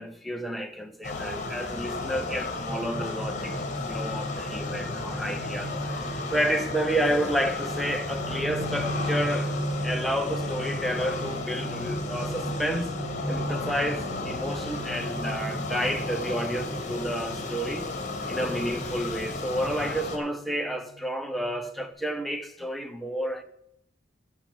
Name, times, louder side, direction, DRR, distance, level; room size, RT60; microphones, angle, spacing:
voice 1, 0.0-3.6 3.9-9.5 9.8-13.0 13.3-17.9 18.3-23.4, equal, ahead, 0.7 m, -30 dB
sound 1, 1.0-20.2, left 3 dB, 40° left, 1.6 m, -34 dB
sound 2, 2.7-21.9, right 1 dB, 45° right, 3.9 m, -37 dB
12.0 x 5.5 x 6.8 m
head